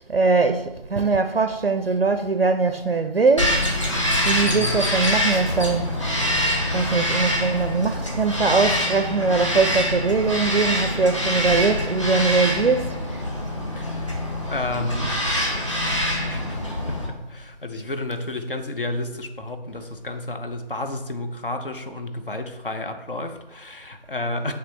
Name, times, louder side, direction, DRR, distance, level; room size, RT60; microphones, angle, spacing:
voice 1, 0.1-3.6 4.2-5.9 6.7-13.2, right 4 dB, 60° right, 0.5 m, -21 dB
Bird vocalization bird call bird song, 3.4-17.1, left 1 dB, 30° left, 1.0 m, -25 dB
voice 2, 4.4-4.9 13.7-14.2 14.5-24.5, left 2 dB, 55° left, 0.8 m, -31 dB
8.7 x 3.3 x 3.9 m
figure-of-eight pair, 165°, 32 cm